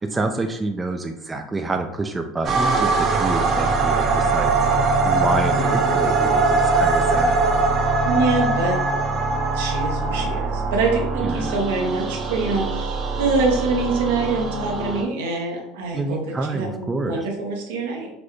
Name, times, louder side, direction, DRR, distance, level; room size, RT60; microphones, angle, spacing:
voice 1, 0.0-4.5 5.0-7.4 11.2-11.5 15.9-17.2, right 2 dB, 20° right, 4 dB, 0.3 m, -27 dB
sound 1, 2.4-15.0, right 3 dB, 45° right, 0.7 m, -21 dB
voice 2, 5.5-6.0 8.0-8.8 9.5-18.1, right 3 dB, 85° right, 1 dB, 0.9 m, -25 dB
4.1 x 2.1 x 3.1 m, 0.86 s
supercardioid pair, 100°, 0 cm